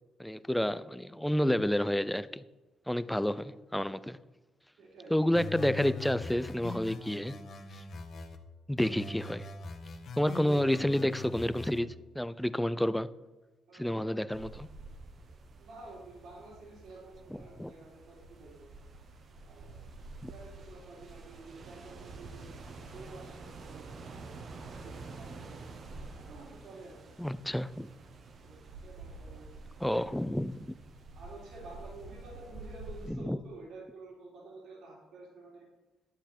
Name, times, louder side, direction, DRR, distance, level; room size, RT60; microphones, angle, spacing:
voice 1, 0.2-2.4 2.9-4.2 5.1-7.3 8.7-9.5 10.2-11.9 12.2-13.1 13.7-14.7 17.3-17.7 20.2-20.3 27.2-27.9 29.8-30.7 33.1-33.4, left 1 dB, 5° left, 0.5 m, -30 dB
voice 2, 4.8-5.2 10.2-10.6 13.7-14.2 15.6-18.7 19.4-19.7 20.3-24.1 24.8-25.5 26.2-27.3 28.4-29.5 30.1-30.2 31.1-35.7, right 2 dB, 80° right, 3.1 m, -50 dB
sound 1, 5.3-8.4 8.8-11.8, left 3 dB, 55° left, 1.4 m, -42 dB
sound 2, 14.3-33.1, right 3 dB, 50° right, 1.2 m, -48 dB
11.5 x 7.8 x 4.4 m
cardioid pair, 90°, 0 cm